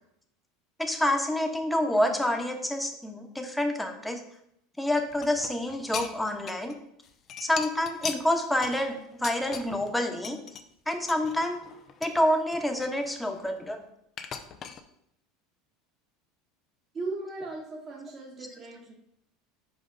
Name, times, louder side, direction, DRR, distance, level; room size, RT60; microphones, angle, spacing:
voice 1, 0.8-4.2 4.8-6.8 7.4-10.4 10.9-11.6 12.0-13.8, left 1 dB, 5° left, 4 dB, 1.2 m, -28 dB
sound 1, 5.1-6.8 7.0-9.9 10.2-10.6 11.1-12.2 12.5-13.7 14.2-14.8, left 7 dB, 40° left, 0.7 m, -40 dB
voice 2, 16.9-18.9, right 3 dB, 35° right, -3 dB, 1.5 m, -37 dB
5.5 x 4.9 x 5.1 m, 0.76 s
hypercardioid pair, 80°, 0 cm